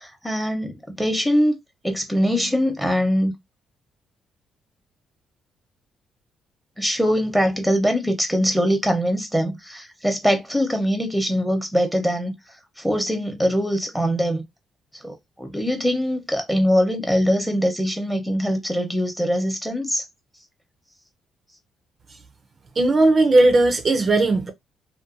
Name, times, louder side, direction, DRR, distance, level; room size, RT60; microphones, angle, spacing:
voice 1, 0.0-1.6 1.8-3.3 6.8-12.3 12.8-14.4 15.0-20.0, equal, ahead, 0.8 m, -22 dB
voice 2, 22.8-24.5, right 2 dB, 40° right, 0.4 m, -17 dB
2.5 x 2.2 x 2.5 m
cardioid pair, 90°, 0 cm